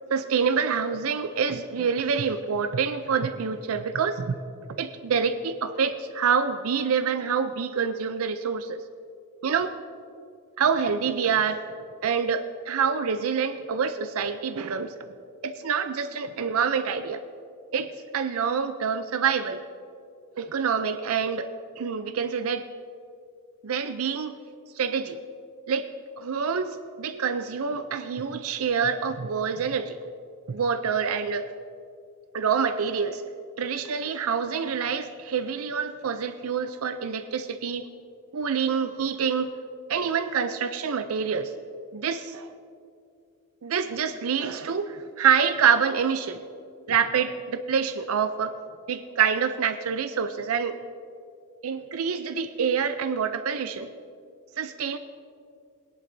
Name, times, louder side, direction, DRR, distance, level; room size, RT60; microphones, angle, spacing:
voice 1, 0.1-4.4 4.8-8.8 9.4-9.7 10.6-11.6 12.0-14.9 15.4-17.2 17.7-19.6 20.4-21.5 21.8-22.6 23.6-24.3 24.8-25.2 25.7-25.9 26.2-30.0 30.5-31.5 32.3-33.2 33.6-37.8 38.3-39.5 39.9-41.5 41.9-42.5 43.6-46.4 46.9-48.5 48.9-50.8 51.6-53.9 54.6-55.0, right 6 dB, 75° right, 10 dB, 0.5 m, -26 dB
20.0 x 11.0 x 2.7 m, 2.4 s
head